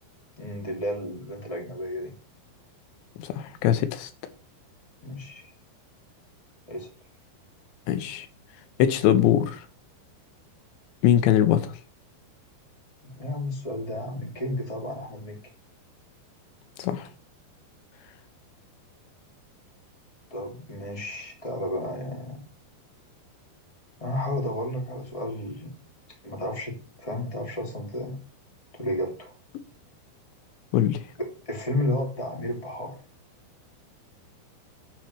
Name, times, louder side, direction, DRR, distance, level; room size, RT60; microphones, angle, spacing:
voice 1, 0.4-2.1 5.0-5.5 6.7-6.9 13.0-15.4 20.3-22.4 24.0-25.7 26.2-28.2 28.7-29.3 31.2-33.0, left 1 dB, 10° left, 2.4 m, -32 dB
voice 2, 3.2-4.1 7.9-8.3 8.8-9.6 11.0-11.7 16.8-17.1 30.7-31.0, left 11 dB, 90° left, 3.2 m, -22 dB
9.6 x 4.5 x 7.0 m
omnidirectional pair, 5.2 m